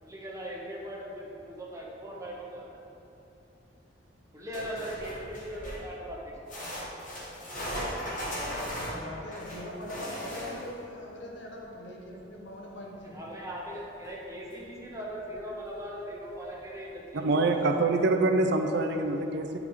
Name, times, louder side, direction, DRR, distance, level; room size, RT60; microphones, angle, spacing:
voice 1, 0.0-2.6 4.3-6.3 13.1-17.9, equal, 15° right, -4 dB, 1.0 m, -39 dB
sound 1, 4.5-5.9 6.5-10.8 14.0-14.1 14.5-14.6 15.3-15.4, equal, 45° left, 1.5 m, -37 dB
voice 2, 8.5-13.3, left 1 dB, 70° left, -1 dB, 1.0 m, -42 dB
voice 3, 17.2-19.6, right 2 dB, 65° right, 5 dB, 0.4 m, -25 dB
8.4 x 4.7 x 3.7 m, 2.9 s
head